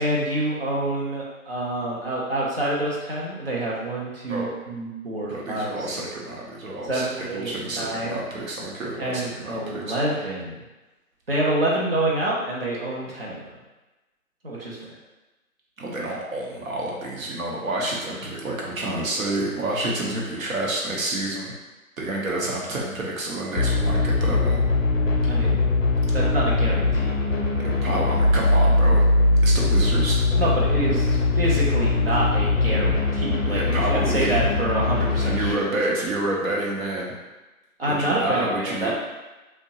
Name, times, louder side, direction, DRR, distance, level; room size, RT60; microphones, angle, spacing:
voice 1, 0.0-6.0 6.9-8.2 9.0-10.6 11.3-13.5 14.4-14.8 25.3-25.7 26.1-27.1 30.4-33.6 33.9-35.7 37.8-38.9, right 1 dB, 45° right, -5 dB, 0.6 m, -27 dB
voice 2, 5.3-10.0 15.8-21.5 22.0-24.6 27.6-29.1 29.4-30.2 33.5-34.3 35.1-37.1 37.9-38.9, right 1 dB, 70° right, -2 dB, 0.8 m, -29 dB
sound 1, 23.6-35.5, left 2 dB, 65° left, 0.6 m, -21 dB
2.7 x 2.1 x 2.8 m, 1.1 s
figure-of-eight pair, 170°, 42 cm